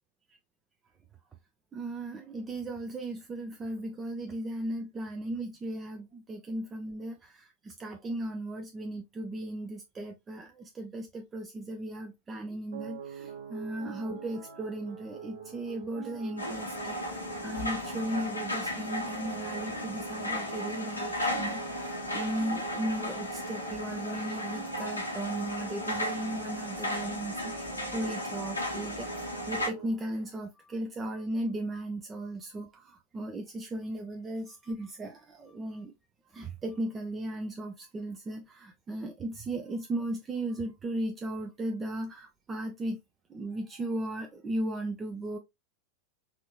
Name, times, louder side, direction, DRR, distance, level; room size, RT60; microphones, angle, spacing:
voice 1, 1.7-35.9 36.3-43.0 43.3-45.4, right 1 dB, 20° right, 0.5 m, -36 dB
sound 1, 12.7-29.9, right 7 dB, 65° right, 1.2 m, -45 dB
sound 2, 16.4-29.7, left 1 dB, 85° left, 1.1 m, -35 dB
4.2 x 2.6 x 2.9 m
figure-of-eight pair, 90°, 0 cm